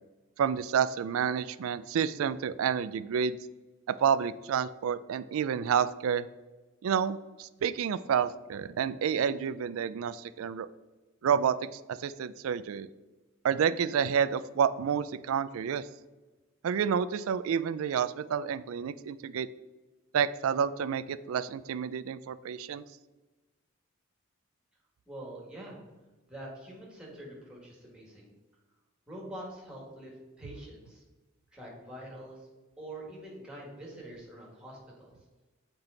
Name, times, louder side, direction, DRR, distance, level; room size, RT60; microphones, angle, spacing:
voice 1, 0.4-3.4 3.9-6.3 6.8-10.7 11.2-12.9 13.4-15.9 16.6-19.5 20.1-22.8, right 7 dB, 75° right, 15 dB, 0.3 m, -29 dB
voice 2, 25.1-25.8 26.3-28.3 29.1-31.0 31.5-32.5 32.8-35.1, right 1 dB, 5° right, -3 dB, 1.7 m, -45 dB
7.3 x 4.5 x 3.8 m, 1.2 s
head